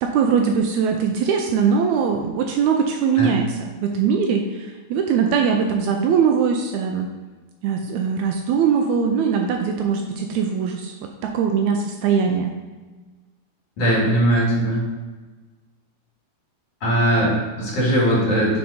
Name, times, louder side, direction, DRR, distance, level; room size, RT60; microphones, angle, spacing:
voice 1, 0.0-7.1 7.6-10.9 11.2-12.5, right 6 dB, 80° right, 3 dB, 1.9 m, -21 dB
voice 2, 13.8-14.8 16.8-18.6, right 1 dB, 55° left, -5 dB, 3.2 m, -19 dB
6.1 x 4.0 x 4.9 m, 1.3 s
omnidirectional pair, 3.4 m